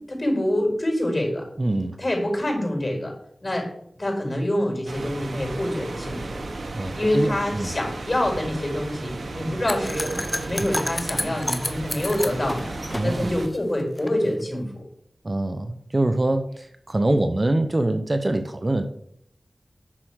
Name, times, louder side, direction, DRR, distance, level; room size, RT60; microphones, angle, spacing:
voice 1, 0.1-1.4 2.0-3.1 3.4-3.7 4.0-6.4 6.9-12.7 13.0-14.6, left 1 dB, 35° left, 1 dB, 5.2 m, -26 dB
voice 2, 1.6-2.0 6.7-7.7 12.9-13.3 15.2-18.8, right 2 dB, 40° right, 8 dB, 0.8 m, -24 dB
sound 1, 4.9-13.5, right 2 dB, 90° right, 1.1 m, -34 dB
sound 2, 9.7-14.1, left 1 dB, 20° left, 1.0 m, -31 dB
10.0 x 6.2 x 6.2 m, 0.69 s
wide cardioid pair, 65°, 0 cm